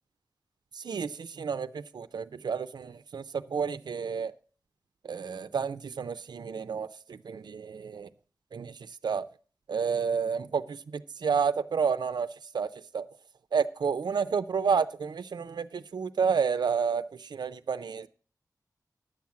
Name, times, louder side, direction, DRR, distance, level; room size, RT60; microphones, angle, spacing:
voice 1, 0.8-4.3 5.1-6.9 7.3-8.1 8.5-8.7 9.0-9.3 9.7-10.8 11.2-12.3 12.5-13.0 13.5-17.0 17.3-18.1, right 6 dB, 85° right, 12 dB, 0.5 m, -30 dB
10.0 x 7.2 x 7.4 m, 0.41 s
wide cardioid pair, 105°, 7 cm